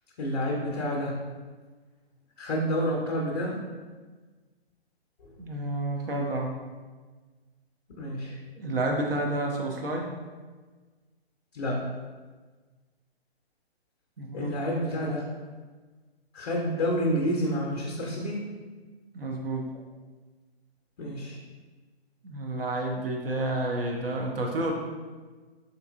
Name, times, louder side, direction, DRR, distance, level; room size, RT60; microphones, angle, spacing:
voice 1, 0.2-1.2 2.4-3.6 5.2-5.3 8.0-8.4 11.5-11.9 14.3-15.3 16.3-18.5 21.0-21.4, equal, 40° left, -2 dB, 0.5 m, -29 dB
voice 2, 5.4-6.6 8.6-10.1 14.2-14.5 14.9-15.0 19.1-19.7 22.2-24.7, right 2 dB, 65° right, 1 dB, 0.6 m, -30 dB
3.8 x 2.7 x 2.4 m, 1.4 s
figure-of-eight pair, 135°, 31 cm